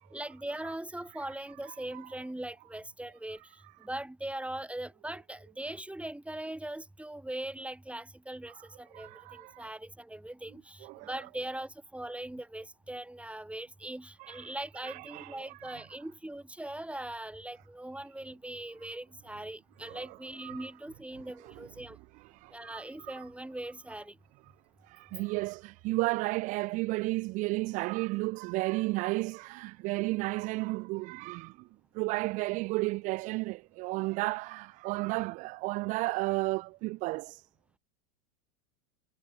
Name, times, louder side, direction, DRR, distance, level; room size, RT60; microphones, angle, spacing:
voice 1, 0.1-22.0 22.5-24.2, right 1 dB, 5° right, 5.9 m, -41 dB
voice 2, 8.9-9.7 10.8-11.1 14.2-14.5 14.8-15.9 19.9-20.6 21.4-21.7 22.3-23.1 24.8-31.7 31.9-37.5, right 23 dB, 20° right, 0.4 m, -33 dB
supercardioid pair, 155°, 46 cm